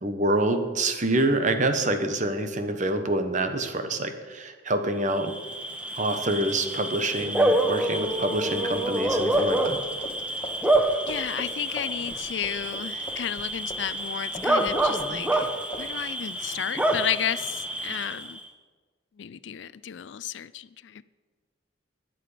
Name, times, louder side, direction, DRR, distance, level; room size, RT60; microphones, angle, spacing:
voice 1, 0.0-5.3 5.9-9.8, right 2 dB, 40° right, 7 dB, 1.1 m, -26 dB
Bark / Cricket, 5.1-18.4, right 1 dB, 5° right, 0.9 m, -27 dB
sound 1, 7.7-14.1 14.3-15.5 15.7-15.9, left 1 dB, 25° left, 1.6 m, -40 dB
voice 2, 11.1-15.5 15.8-18.4 19.2-21.0, left 9 dB, 70° left, 17 dB, 0.4 m, -33 dB
21.0 x 7.7 x 5.0 m, 1.5 s
head